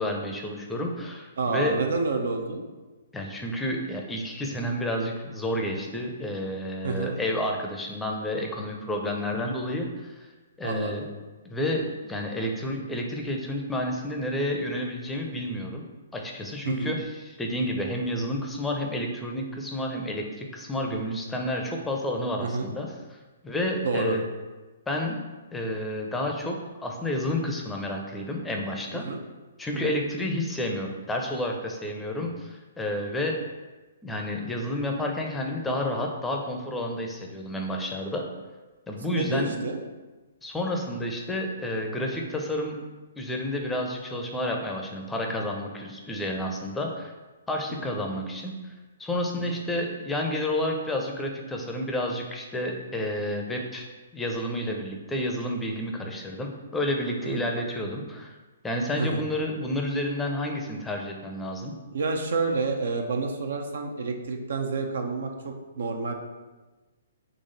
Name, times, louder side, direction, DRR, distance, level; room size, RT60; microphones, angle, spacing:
voice 1, 0.0-1.8 3.1-10.3 10.6-11.0 11.4-15.8 16.1-23.2 23.4-24.2 24.9-25.2 25.5-26.6 26.8-29.0 29.6-33.4 34.0-38.3 38.9-39.5 40.4-42.8 43.2-47.1 47.5-48.7 49.0-53.9 54.1-58.3 58.6-61.7, left 1 dB, 10° left, 1 dB, 0.6 m, -30 dB
voice 2, 1.4-2.7 6.8-7.1 10.6-11.1 16.6-17.0 22.4-22.7 23.8-24.2 28.9-29.2 29.7-30.0 39.1-39.8 47.8-47.9 49.4-49.6 57.3-57.4 59.0-59.2 61.9-66.1, right 4 dB, 65° right, 4 dB, 0.6 m, -29 dB
4.0 x 3.0 x 3.9 m, 1.2 s
figure-of-eight pair, 125°, 0 cm